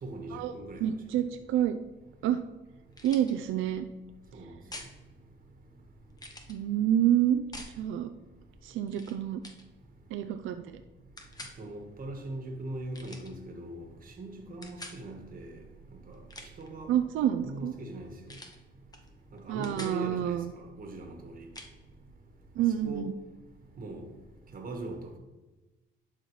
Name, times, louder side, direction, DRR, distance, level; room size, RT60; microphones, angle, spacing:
voice 1, 0.0-0.9 4.3-4.5 11.6-15.6 15.9-16.2 16.6-16.9 17.4-18.3 19.3-21.5 22.6-23.1 23.8-24.1 24.5-25.2, right 2 dB, 45° right, 1.4 m, -41 dB
voice 2, 0.8-1.8 2.2-2.4 3.0-3.9 6.5-7.4 7.7-8.1 8.6-9.4 10.1-10.8 16.9-17.7 19.5-20.5 22.6-23.1, right 11 dB, 85° right, 0.4 m, -28 dB
sound 1, 2.9-3.3 4.7-4.9 6.2-6.6 7.5-7.8 8.9-9.1 9.4-9.6 11.2-11.6 12.9-13.3 14.6-15.0 16.1-16.7 18.3-18.6 18.9-19.1 19.4-20.0 21.5-21.7, left 2 dB, 20° left, 1.0 m, -45 dB
11.5 x 4.4 x 3.1 m
cardioid pair, 90°, 20 cm